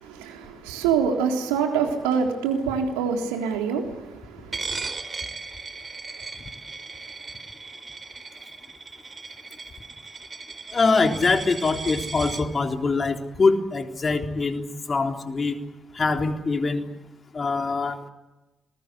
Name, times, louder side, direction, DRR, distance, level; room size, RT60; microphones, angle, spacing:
voice 1, 0.0-4.8, right 6 dB, 80° right, 3.6 m, -26 dB
Coin (dropping), 4.5-12.4, right 4 dB, 40° right, 4.3 m, -37 dB
voice 2, 10.7-15.6 15.9-16.9 17.3-18.0, left 4 dB, 40° left, 3.7 m, -23 dB
28.0 x 21.5 x 8.3 m
hypercardioid pair, 40°, 0 cm